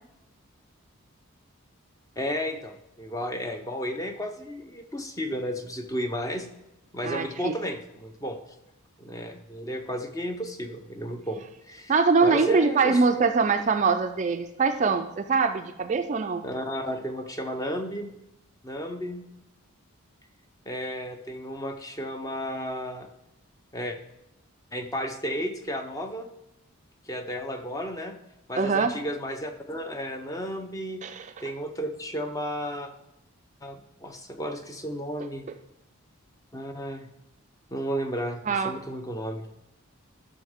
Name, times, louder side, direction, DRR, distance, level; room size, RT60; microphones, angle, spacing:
voice 1, 2.2-6.5 6.9-8.4 9.0-11.9 12.2-13.3 16.4-18.1 18.6-19.3 20.7-23.1 23.7-24.0 24.7-26.3 27.1-28.1 28.5-31.0 31.4-32.9 33.6-35.5 36.5-37.1 37.7-39.5, equal, 15° left, 6 dB, 0.6 m, -33 dB
voice 2, 7.0-7.5 11.9-16.4 28.6-28.9 31.0-31.3 38.5-38.7, right 4 dB, 35° right, 7 dB, 0.3 m, -23 dB
12.5 x 6.2 x 3.5 m, 0.90 s
head